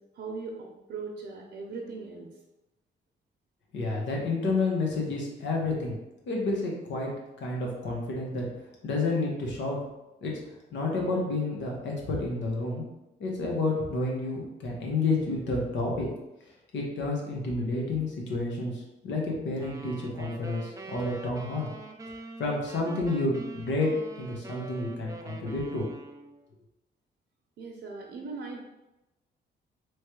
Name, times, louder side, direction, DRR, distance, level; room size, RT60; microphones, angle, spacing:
voice 1, 0.1-2.3 27.6-28.6, right 4 dB, 70° right, -1 dB, 0.7 m, -39 dB
voice 2, 3.7-5.9 6.3-8.5 8.8-9.8 10.2-10.4 10.7-12.8 13.2-16.1 16.7-21.7 22.4-23.9 24.2-25.9, left 2 dB, 90° left, -1 dB, 1.1 m, -30 dB
sound 1, 19.6-26.4, right 3 dB, 20° right, 0.4 m, -44 dB
3.2 x 3.2 x 4.5 m, 0.97 s
wide cardioid pair, 145°, 18 cm